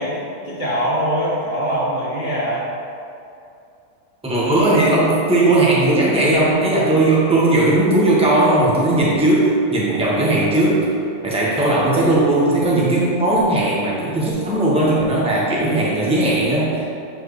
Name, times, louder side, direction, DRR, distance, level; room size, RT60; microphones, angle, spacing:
voice 1, 0.0-2.7, equal, 35° right, -9 dB, 0.9 m, -23 dB
voice 2, 4.2-10.9 11.2-16.8, right 2 dB, 5° right, -6 dB, 1.0 m, -17 dB
7.4 x 4.6 x 3.2 m, 2.6 s
omnidirectional pair, 1.6 m